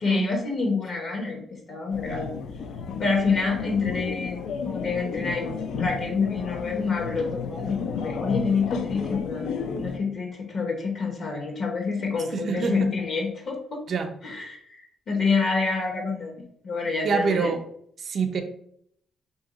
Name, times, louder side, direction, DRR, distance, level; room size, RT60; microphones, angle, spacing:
voice 1, 0.0-2.3 3.0-9.5 9.8-13.8 14.2-16.3 16.6-17.5, left 4 dB, 60° left, 1 dB, 0.8 m, -27 dB
sound 1, 1.9-10.0, left 5 dB, 80° left, 0.4 m, -32 dB
voice 2, 12.3-12.9 13.9-14.1 17.0-17.6 18.0-18.4, right 5 dB, 55° right, 6 dB, 0.5 m, -25 dB
2.9 x 2.6 x 3.9 m, 0.68 s
cardioid pair, 90°, 0 cm